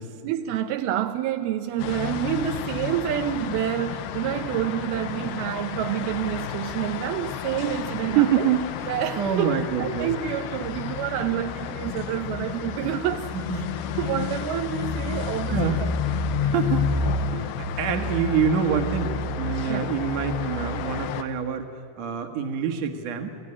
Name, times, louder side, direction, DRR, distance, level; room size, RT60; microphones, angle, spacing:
voice 1, 0.2-8.5 8.9-13.3 14.0-15.9 19.7-19.9, right 11 dB, 80° right, 2.6 m, -28 dB
sound 1, 1.8-21.2, left 6 dB, 75° left, 2.6 m, -30 dB
voice 2, 8.2-8.7 9.2-10.1 13.3-13.7 15.5-15.8 16.3-23.4, right 7 dB, 55° right, 2.3 m, -26 dB
29.0 x 15.5 x 9.9 m
omnidirectional pair, 4.6 m